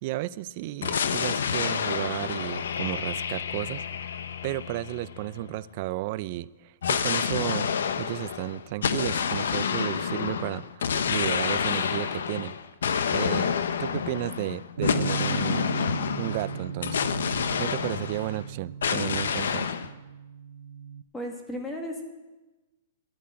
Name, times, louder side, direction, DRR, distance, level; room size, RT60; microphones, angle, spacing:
voice 1, 0.0-3.8 4.4-7.7 8.0-12.5 13.1-15.7 16.2-17.1 17.6-19.8, right 16 dB, 35° right, 17 dB, 0.3 m, -33 dB
sound 1, 0.8-5.5 6.8-18.5 18.8-19.9, left 7 dB, 80° left, 0.8 m, -29 dB
Bass guitar, 14.8-21.0, right 8 dB, 90° right, 0.6 m, -37 dB
voice 2, 21.1-22.0, equal, 5° left, 2 dB, 1.4 m, -34 dB
12.5 x 7.5 x 8.6 m, 1.1 s
hypercardioid pair, 170°, 0 cm